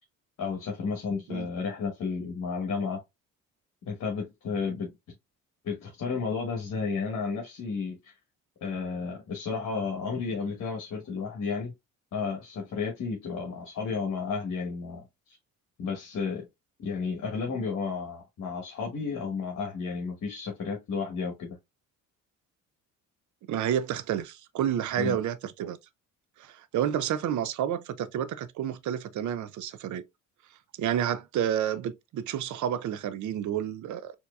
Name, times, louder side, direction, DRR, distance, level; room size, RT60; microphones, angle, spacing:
voice 1, 0.4-3.0 3.8-4.9 5.6-8.1 8.6-11.7 12.1-15.4 15.8-16.5 16.8-21.6 25.0-25.2, left 5 dB, 55° left, 1.2 m, -32 dB
voice 2, 23.5-25.8 26.4-30.0 30.8-34.1, right 10 dB, 60° right, 0.6 m, -30 dB
4.4 x 2.8 x 2.3 m
supercardioid pair, 75°, 33 cm